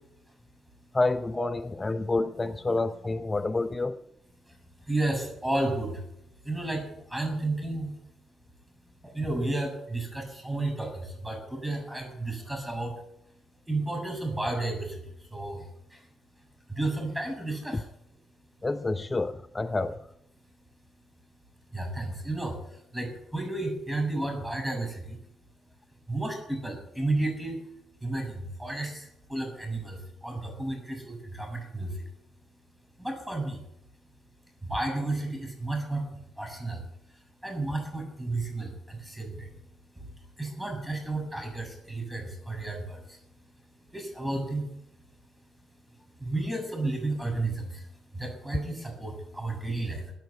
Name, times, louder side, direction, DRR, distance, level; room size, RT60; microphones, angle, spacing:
voice 1, 0.9-4.0 17.7-17.8 18.6-20.0, left 2 dB, 20° left, 0.7 m, -28 dB
voice 2, 4.9-6.0 6.4-7.9 9.0-12.9 13.7-16.1 16.7-17.8 21.7-25.2 26.1-27.6 28.0-32.0 33.0-33.6 34.6-36.1 36.4-36.8 37.4-39.6 40.0-40.1 40.4-43.2 43.9-44.7 46.2-47.9 48.1-50.1, right 2 dB, 5° right, 7.1 m, -32 dB
15.0 x 9.0 x 9.8 m
cardioid pair, 90°, 0 cm